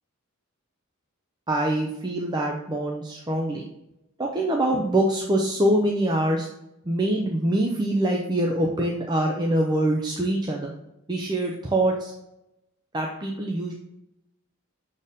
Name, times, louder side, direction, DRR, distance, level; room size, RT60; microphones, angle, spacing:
voice 1, 1.5-3.7 4.2-6.5 6.8-10.7 11.1-12.1 12.9-13.7, right 1 dB, 20° right, 0 dB, 0.6 m, -24 dB
6.7 x 4.3 x 3.5 m, 0.89 s
head